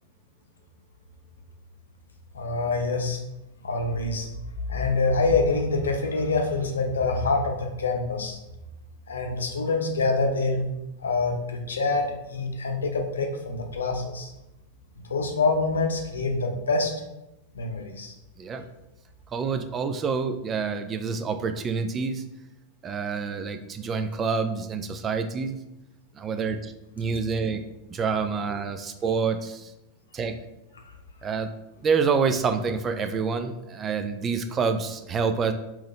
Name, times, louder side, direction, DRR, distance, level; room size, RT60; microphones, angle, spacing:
voice 1, 2.3-3.2 3.6-4.3 4.7-8.4 9.1-10.6 11.0-14.3 15.1-16.9 17.5-18.1, left 3 dB, 70° left, 4 dB, 0.6 m, -26 dB
voice 2, 19.3-22.2 22.8-25.6 26.1-27.6 27.9-29.7 30.1-30.4 31.2-31.5 31.8-35.5, right 5 dB, 25° right, 8 dB, 0.4 m, -27 dB
3.7 x 3.0 x 4.1 m, 0.93 s
figure-of-eight pair, 90°, 0 cm